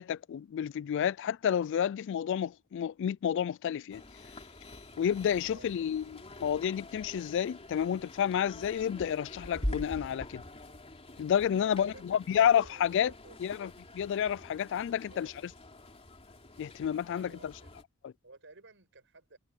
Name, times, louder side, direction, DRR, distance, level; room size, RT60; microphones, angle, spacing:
voice 1, 0.0-4.0 5.0-10.4 11.2-13.1 13.4-15.3 16.6-17.5 18.0-18.1, left 9 dB, 60° left, 0.3 m, -30 dB
sound 1, 3.9-17.8, left 1 dB, 30° left, 3.1 m, -45 dB
voice 2, 11.6-13.4 15.1-15.4 17.1-17.7 18.2-19.4, right 3 dB, 60° right, 7.8 m, -54 dB
head